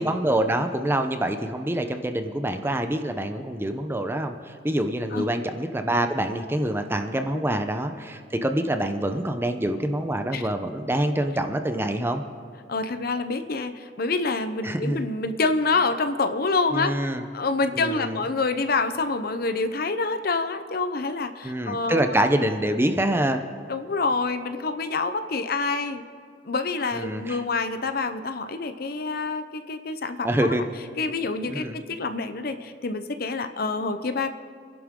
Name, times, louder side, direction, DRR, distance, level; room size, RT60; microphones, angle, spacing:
voice 1, 0.0-12.2 14.6-15.1 16.7-17.2 17.7-18.2 21.4-23.4 26.9-27.4 30.2-30.6 31.5-31.8, right 1 dB, 15° right, 6 dB, 0.8 m, -26 dB
voice 2, 12.7-16.9 17.3-22.1 23.7-26.0 26.4-30.5 31.0-34.3, left 3 dB, 55° left, 9 dB, 0.8 m, -27 dB
29.5 x 11.0 x 3.8 m, 2.2 s
head